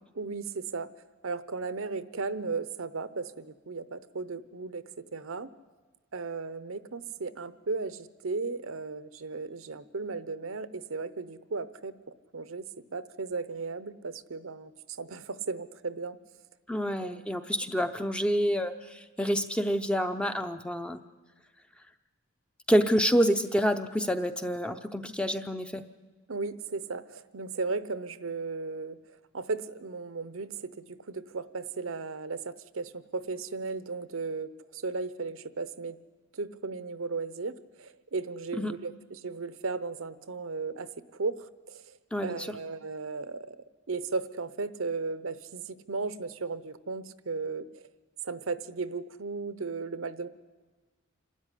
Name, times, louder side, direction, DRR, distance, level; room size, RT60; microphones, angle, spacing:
voice 1, 0.1-0.9 1.2-4.8 5.1-5.5 6.1-11.9 12.3-16.2 17.0-17.2 26.3-36.0 36.3-37.5 37.8-43.6 43.9-47.9 48.2-50.3, right 4 dB, 70° right, 14 dB, 0.8 m, -36 dB
voice 2, 16.7-21.0 22.7-25.8 38.6-38.7 42.1-42.5, equal, 5° left, 8 dB, 0.7 m, -27 dB
26.5 x 13.0 x 9.9 m, 1.3 s
head